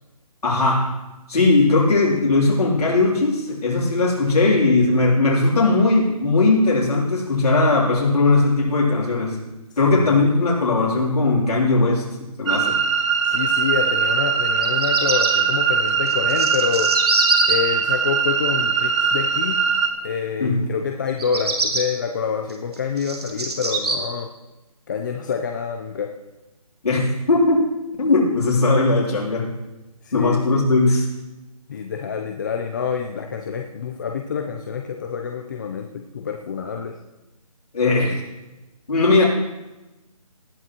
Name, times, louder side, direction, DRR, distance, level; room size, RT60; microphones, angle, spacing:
voice 1, 0.4-0.9 1.3-9.4 9.8-12.0 12.4-12.8 20.4-20.6 26.8-27.7 28.0-29.5 30.1-31.1 37.7-38.2 38.9-39.2, left 3 dB, 75° left, -5 dB, 3.3 m, -18 dB
voice 2, 9.8-10.2 13.2-16.9 17.5-19.6 20.0-24.3 24.9-26.1 30.0-30.6 31.7-37.0, left 6 dB, 30° left, 3 dB, 0.7 m, -27 dB
sound 1, 12.5-19.9, right 6 dB, 50° right, 1.3 m, -21 dB
Bird vocalization bird call bird song, 14.5-15.3 16.1-17.5 21.1-21.8 22.5-24.0, right 3 dB, 85° right, 2.9 m, -23 dB
19.0 x 11.0 x 3.0 m, 1.1 s
hypercardioid pair, 160°, 19 cm